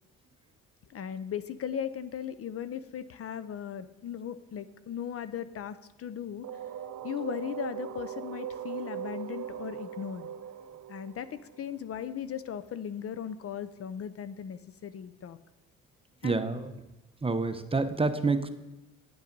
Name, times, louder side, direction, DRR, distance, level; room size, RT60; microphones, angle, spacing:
voice 1, 0.9-6.5 7.0-10.3 10.9-15.4 16.2-16.5, left 8 dB, 50° left, 13 dB, 0.6 m, -37 dB
sound 1, 6.4-12.2, right 9 dB, 70° right, 0.8 m, -40 dB
voice 2, 16.2-16.7 17.2-18.5, right 3 dB, 20° right, 9 dB, 0.8 m, -28 dB
9.6 x 8.4 x 5.3 m, 0.99 s
cardioid pair, 90°, 30 cm